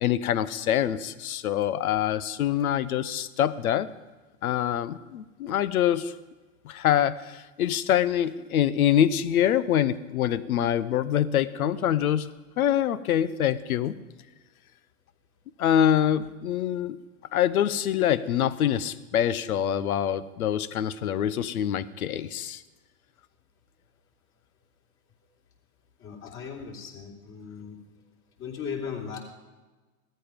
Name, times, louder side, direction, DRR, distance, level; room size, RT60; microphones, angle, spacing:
voice 1, 0.0-3.9 4.4-6.1 6.6-12.3 12.6-14.0 15.6-17.0 17.3-22.6, left 10 dB, 80° left, 16 dB, 0.9 m, -25 dB
voice 2, 26.0-27.8 28.4-29.2, left 6 dB, 35° left, -1 dB, 3.3 m, -37 dB
16.5 x 13.5 x 5.3 m, 1.2 s
hypercardioid pair, 135°, 43 cm